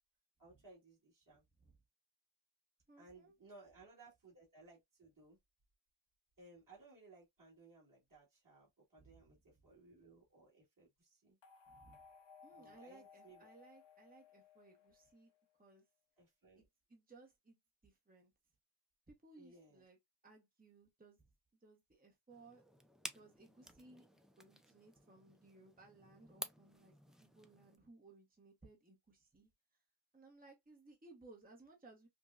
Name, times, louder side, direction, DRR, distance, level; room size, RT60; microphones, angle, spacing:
voice 1, 0.4-1.4 3.0-5.4 6.4-11.4 12.6-13.5 16.2-16.6 19.4-19.8, right 3 dB, 40° right, 2.0 m, -62 dB
voice 2, 2.9-3.3 9.0-9.4 11.7-12.0 12.4-15.3 15.6-15.8 16.6-16.7 16.9-17.6 17.8-18.3 19.1-20.0 20.2-21.2 21.6-22.6 23.0-24.1 24.4-29.8 30.1-32.1, right 3 dB, 20° right, 0.9 m, -62 dB
sound 1, 11.4-15.6, left 6 dB, 65° left, 0.9 m, -62 dB
sound 2, 22.3-27.8, equal, ahead, 0.4 m, -53 dB
5.2 x 2.2 x 2.4 m
wide cardioid pair, 95°, 47 cm